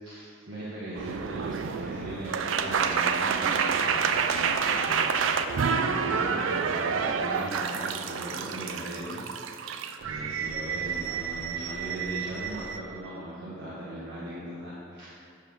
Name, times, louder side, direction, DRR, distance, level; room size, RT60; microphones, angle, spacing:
voice 1, 0.0-9.7 10.0-15.3, right 1 dB, 60° right, -10 dB, 1.3 m, -39 dB
sound 1, 0.9-12.8, right 6 dB, 80° right, 0.4 m, -29 dB
8.2 x 3.5 x 6.3 m, 2.3 s
head